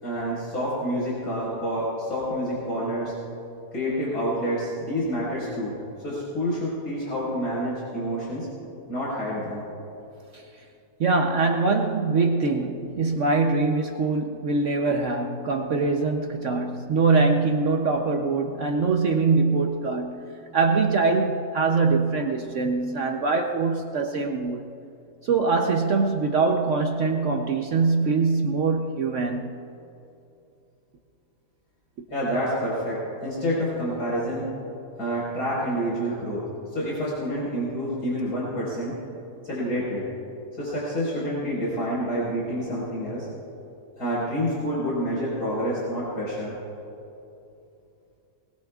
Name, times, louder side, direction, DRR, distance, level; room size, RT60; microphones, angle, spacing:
voice 1, 0.0-3.1 3.7-5.8 6.0-8.5 8.9-9.6 32.1-34.5 35.0-39.0 39.4-40.1 40.6-43.3 44.0-46.5, equal, 70° left, 5.2 m, -28 dB
voice 2, 11.0-20.3 20.5-24.7 25.2-29.6, right 4 dB, 60° right, 0.9 m, -23 dB
21.0 x 21.0 x 2.4 m
omnidirectional pair, 1.7 m